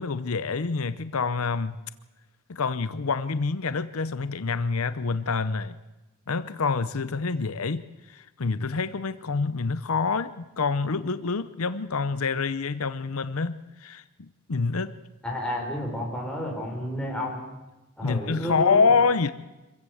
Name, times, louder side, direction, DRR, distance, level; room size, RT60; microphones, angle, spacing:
voice 1, 0.0-1.8 2.5-5.8 6.3-14.9 18.0-19.3, left 4 dB, 80° left, 13 dB, 0.8 m, -27 dB
voice 2, 15.2-17.4 18.0-19.0, equal, 5° left, -1 dB, 4.7 m, -31 dB
25.5 x 15.5 x 7.9 m, 1.1 s
head